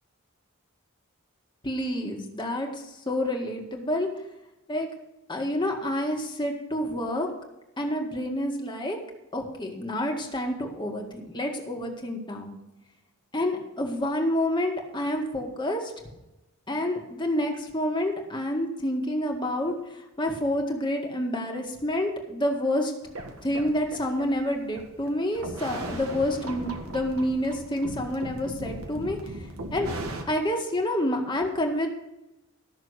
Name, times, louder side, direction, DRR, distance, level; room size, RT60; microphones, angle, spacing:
voice 1, 1.6-4.1 4.7-4.9 5.3-7.3 7.8-9.0 9.3-12.5 13.3-15.9 16.7-22.9 23.4-29.3 29.7-29.9 30.3-31.9, left 1 dB, 20° left, 1 dB, 1.9 m, -28 dB
sound 1, 23.0-30.2, right 1 dB, 70° right, 1.8 m, -37 dB
13.5 x 6.7 x 6.5 m, 0.96 s
head